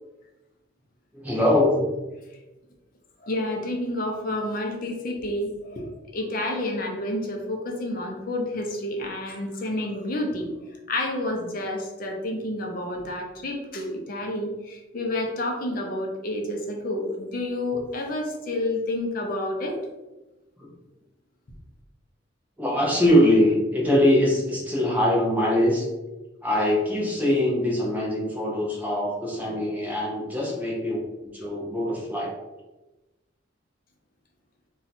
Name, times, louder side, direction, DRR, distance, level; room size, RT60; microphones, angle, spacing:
voice 1, 1.1-1.9 22.6-25.9 26.4-31.0 31.3-32.3, left 1 dB, 10° right, -4 dB, 0.7 m, -22 dB
voice 2, 3.2-10.5 10.9-19.8, left 1 dB, 45° left, 1 dB, 0.6 m, -29 dB
2.7 x 2.3 x 4.0 m, 1.1 s
head